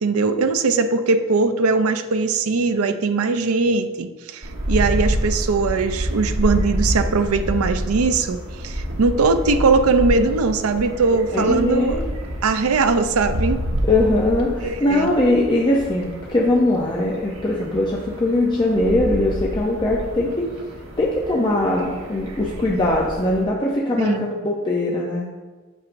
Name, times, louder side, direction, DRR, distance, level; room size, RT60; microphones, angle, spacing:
voice 1, 0.0-12.0 12.4-13.6 14.6-15.1 24.0-24.3, right 4 dB, 90° right, 9 dB, 0.5 m, -20 dB
sound 1, 4.4-23.4, equal, 70° right, 1.1 m, -28 dB
voice 2, 11.1-12.1 13.8-20.5 21.0-25.3, left 1 dB, 20° left, -3 dB, 0.5 m, -21 dB
8.5 x 6.3 x 2.6 m, 1.3 s
head